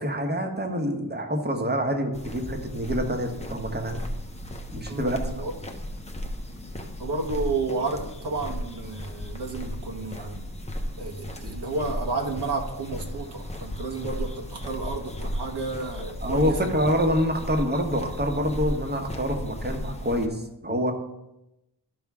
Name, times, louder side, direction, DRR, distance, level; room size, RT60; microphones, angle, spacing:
voice 1, 0.0-4.0 4.7-5.3 16.2-20.9, equal, 25° right, 3 dB, 1.2 m, -26 dB
sound 1, 2.1-20.3, equal, 15° left, 0.8 m, -35 dB
voice 2, 4.9-5.5 7.0-10.4 11.0-16.7, right 3 dB, 70° right, 1 dB, 1.3 m, -31 dB
12.5 x 5.5 x 3.6 m, 0.90 s
wide cardioid pair, 120°, 41 cm